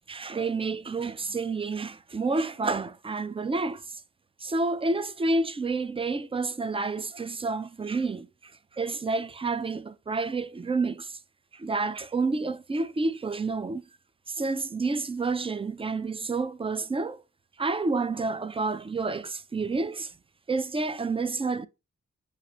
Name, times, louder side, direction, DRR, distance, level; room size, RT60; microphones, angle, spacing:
voice 1, 0.1-4.0 4.4-11.2 11.5-13.8 14.3-17.2 17.6-20.1 20.5-21.7, right 3 dB, 20° right, 0.3 m, -29 dB
6.5 x 2.5 x 3.0 m
cardioid pair, 60°, 32 cm